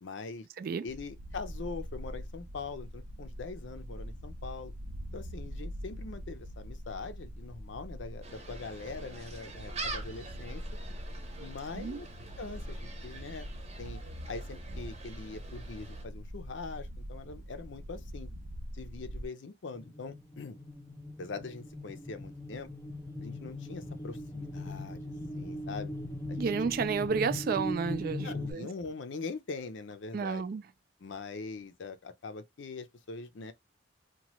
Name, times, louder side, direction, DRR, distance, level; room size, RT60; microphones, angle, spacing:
voice 1, 0.0-0.5 0.8-4.7 5.1-10.6 11.4-12.1 12.4-13.5 13.8-14.0 14.3-18.3 18.7-20.6 21.2-22.7 23.2-25.9 26.3-26.5 28.2-30.4 31.0-33.5, left 4 dB, 70° left, 0.5 m, -42 dB
sound 1, 0.9-19.3, equal, 90° right, 0.7 m, -43 dB
Gull seagull, 8.2-16.0, right 3 dB, 35° right, 0.8 m, -45 dB
sound 2, 19.7-28.5, left 1 dB, 10° left, 0.6 m, -39 dB
voice 2, 26.4-28.7 30.1-30.6, right 5 dB, 50° right, 0.3 m, -31 dB
2.9 x 2.2 x 3.0 m
head